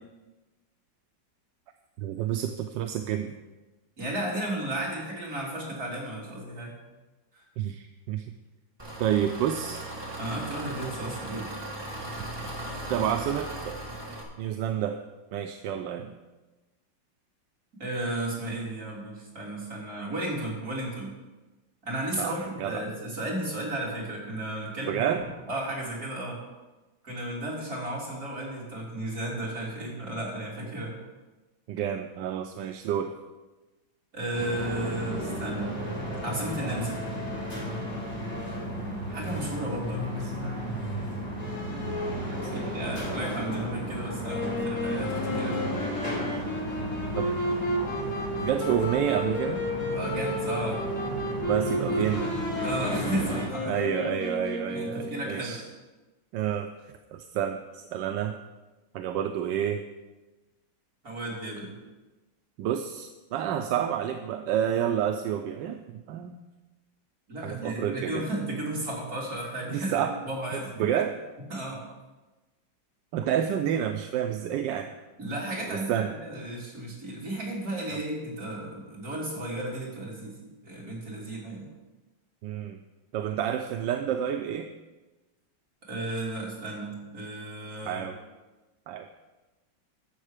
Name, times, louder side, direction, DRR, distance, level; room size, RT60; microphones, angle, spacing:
voice 1, 2.0-3.3 7.6-8.2 9.0-9.8 12.2-12.5 12.9-13.8 14.4-15.0 15.3-16.1 22.2-22.8 24.9-25.2 31.7-33.1 40.2-40.3 42.4-42.6 47.2-47.3 48.4-49.6 51.4-52.3 53.6-55.6 56.3-56.7 57.1-58.3 58.9-59.8 62.6-66.4 67.4-68.3 69.7-70.1 70.5-71.2 73.1-74.9 75.7-76.1 77.9-78.0 82.4-82.8 83.1-84.7 87.8-88.2 88.9-89.1, right 9 dB, 80° right, 6 dB, 1.3 m, -29 dB
voice 2, 4.0-6.8 7.3-7.4 10.2-11.5 17.8-21.2 21.8-26.4 27.0-30.9 34.1-35.7 36.2-37.0 39.1-40.1 42.5-45.6 49.9-50.8 51.8-52.1 52.6-53.8 54.7-55.6 61.0-61.7 67.3-70.9 71.5-71.8 75.2-81.7 85.9-88.0, right 1 dB, 50° right, -5 dB, 3.6 m, -34 dB
Engine, 8.8-14.2, right 1 dB, 15° right, 1.4 m, -37 dB
sound 1, 34.3-53.5, equal, 20° left, 2.8 m, -33 dB
Wind instrument woodwind instrument, 44.2-55.4, equal, 45° left, 1.8 m, -32 dB
12.0 x 7.3 x 5.0 m, 1.2 s
omnidirectional pair, 2.0 m